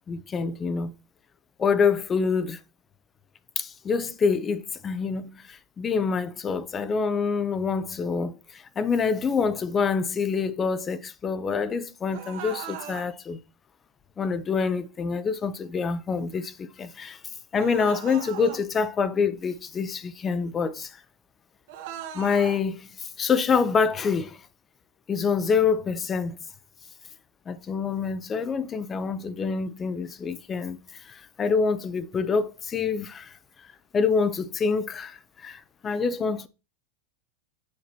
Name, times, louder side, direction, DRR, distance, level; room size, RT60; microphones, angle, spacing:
voice 1, 0.1-0.9 1.6-2.6 3.6-13.4 14.2-17.2 17.5-21.0 22.1-24.4 25.1-26.4 27.5-33.3 33.9-36.5, left 5 dB, 20° left, 0.6 m, -26 dB
sound 1, 12.1-13.1 17.5-18.6 21.7-22.6, right 10 dB, 60° right, 2.0 m, -38 dB
9.5 x 5.8 x 2.8 m
supercardioid pair, 155°, 0 cm